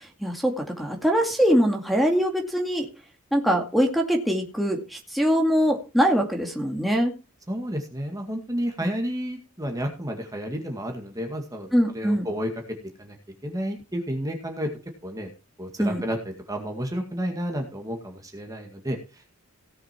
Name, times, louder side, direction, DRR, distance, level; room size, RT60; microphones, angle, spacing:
voice 1, 0.2-2.9 3.3-7.1 11.7-12.3 15.8-16.0, equal, ahead, 0 dB, 2.2 m, -23 dB
voice 2, 7.5-12.5 13.0-13.2 13.4-14.7 15.0-15.3 15.6-19.2, equal, 15° right, 3 dB, 2.1 m, -31 dB
17.0 x 7.1 x 4.5 m, 0.31 s
head